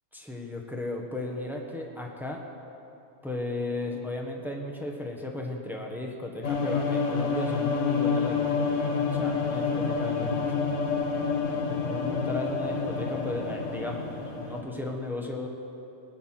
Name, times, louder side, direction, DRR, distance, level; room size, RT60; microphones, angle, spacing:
voice 1, 0.1-2.4 3.2-10.6 11.7-14.1 14.4-15.5, left 2 dB, ahead, 0 dB, 1.3 m, -35 dB
sound 1, 6.4-14.6, left 5 dB, 85° left, 1.6 m, -28 dB
19.5 x 9.3 x 5.9 m, 2.8 s
omnidirectional pair, 1.2 m